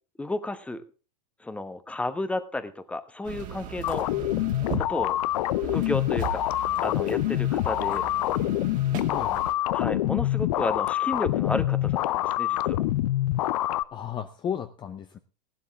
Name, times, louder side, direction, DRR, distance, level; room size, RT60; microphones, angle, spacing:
voice 1, 0.2-0.8 1.4-4.1 4.7-5.2 5.6-6.5 6.8-8.0 9.7-12.9, left 2 dB, 5° left, 12 dB, 1.0 m, -32 dB
sound 1, 3.2-9.5, right 8 dB, 35° right, 2.1 m, -38 dB
sound 2, 3.8-13.8, left 15 dB, 65° left, 0.6 m, -26 dB
voice 2, 4.1-4.6 9.1-9.5 13.9-15.2, left 8 dB, 20° left, 9 dB, 0.7 m, -35 dB
15.0 x 11.5 x 3.5 m, 0.34 s
hypercardioid pair, 120°, 21 cm